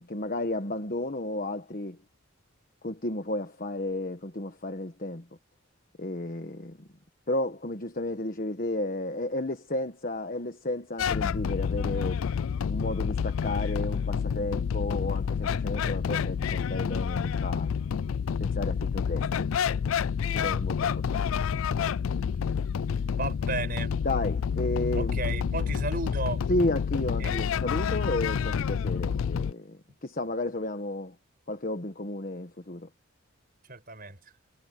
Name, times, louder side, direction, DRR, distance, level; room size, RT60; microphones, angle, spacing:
voice 1, 0.0-2.0 2.8-5.3 6.0-6.9 7.3-12.2 12.7-17.8 18.4-19.5 20.3-21.3 24.0-25.2 26.5-31.1 31.5-32.9, left 1 dB, 40° left, 1.3 m, -32 dB
sound 1, 11.0-29.5, left 7 dB, 75° left, 0.4 m, -29 dB
voice 2, 23.2-23.9 24.9-26.4 27.2-27.3 33.7-34.2, right 3 dB, 45° right, 5.3 m, -33 dB
head